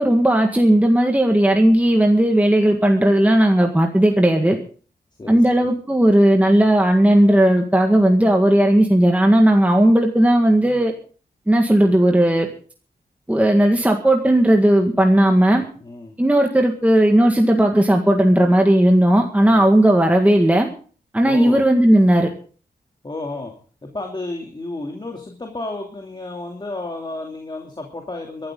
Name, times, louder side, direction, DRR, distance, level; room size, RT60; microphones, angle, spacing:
voice 1, 0.0-4.6 5.3-10.9 11.5-12.5 13.3-15.7 16.2-20.7 21.1-22.3, right 1 dB, 10° right, 3 dB, 1.8 m, -15 dB
voice 2, 5.2-5.7 15.8-16.1 19.4-19.7 21.2-21.7 23.0-23.5 23.8-28.5, left 2 dB, 25° left, 1 dB, 2.9 m, -32 dB
24.0 x 12.5 x 3.8 m, 0.42 s
wide cardioid pair, 135°, 17 cm